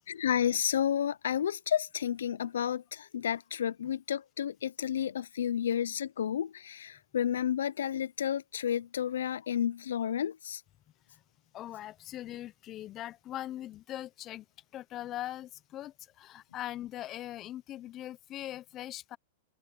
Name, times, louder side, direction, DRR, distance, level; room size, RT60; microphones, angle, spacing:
voice 1, 0.1-10.6, left 9 dB, 80° left, 0.6 m, -31 dB
voice 2, 11.5-14.4 14.7-19.2, left 13 dB, 35° left, 0.8 m, -41 dB
open air
hypercardioid pair, 110°, 0 cm